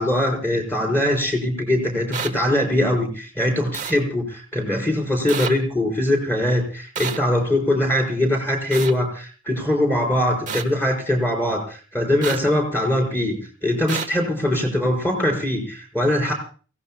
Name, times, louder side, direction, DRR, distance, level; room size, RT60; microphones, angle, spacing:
voice 1, 0.0-16.3, left 1 dB, 10° left, 2 dB, 4.3 m, -22 dB
sound 1, 2.1-2.3 3.7-3.9 5.3-5.5 7.0-7.2 8.7-8.9 10.5-10.6 12.2-12.4 13.9-14.1, right 6 dB, 35° right, 1.1 m, -28 dB
29.0 x 16.5 x 2.2 m, 0.38 s
head